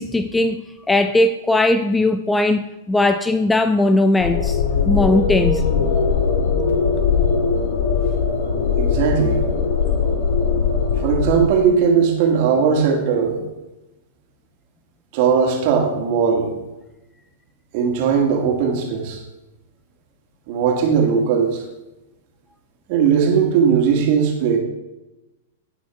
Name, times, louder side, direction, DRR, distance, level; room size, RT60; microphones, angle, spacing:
voice 1, 0.0-5.6, left 2 dB, 10° left, 11 dB, 0.4 m, -19 dB
sound 1, 4.2-11.4, left 5 dB, 60° left, 1.9 m, -20 dB
voice 2, 8.8-9.4 11.0-13.4 15.1-16.5 17.7-19.2 20.5-21.6 22.9-24.6, right 6 dB, 45° right, 1 dB, 2.2 m, -18 dB
16.5 x 6.1 x 3.4 m, 0.99 s
figure-of-eight pair, 100°, 0 cm